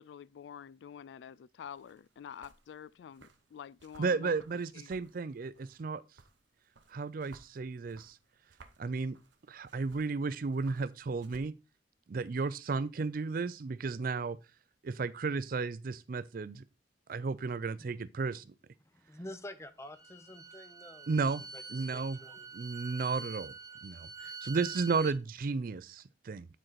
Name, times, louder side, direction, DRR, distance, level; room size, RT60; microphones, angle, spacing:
voice 1, 0.0-4.3 4.7-4.9, left 8 dB, 75° left, 0.3 m, -48 dB
sound 1, 1.7-11.5, right 4 dB, 85° right, 0.8 m, -61 dB
voice 2, 4.0-6.0 6.9-8.2 8.8-9.2 9.5-11.5 12.1-14.4 14.8-16.6 17.1-18.5 21.1-21.4 21.7-22.2 22.5-23.5 23.8-26.5, right 4 dB, 50° right, 0.4 m, -33 dB
voice 3, 18.8-21.2 21.5-22.5 22.8-23.1, left 1 dB, 15° left, 0.7 m, -49 dB
Bowed string instrument, 19.8-25.2, right 4 dB, 20° right, 1.0 m, -46 dB
9.0 x 4.5 x 4.1 m
head